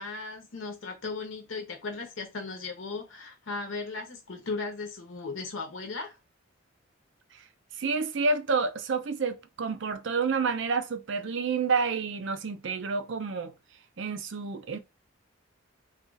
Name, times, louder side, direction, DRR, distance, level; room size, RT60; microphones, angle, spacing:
voice 1, 0.0-6.2, left 3 dB, 70° left, 0.7 m, -37 dB
voice 2, 7.8-13.5 14.0-14.8, right 4 dB, 60° right, 0.5 m, -29 dB
2.6 x 2.3 x 3.8 m
head